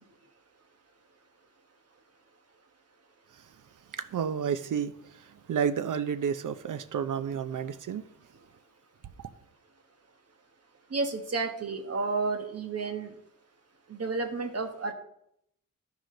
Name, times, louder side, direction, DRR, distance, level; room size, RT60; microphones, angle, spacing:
voice 1, 3.9-4.9 5.2-8.0, right 7 dB, 70° right, 0.7 m, -31 dB
voice 2, 10.9-13.1 13.9-14.9, right 3 dB, 50° right, 1.3 m, -31 dB
14.0 x 4.9 x 3.8 m
wide cardioid pair, 90°, 32 cm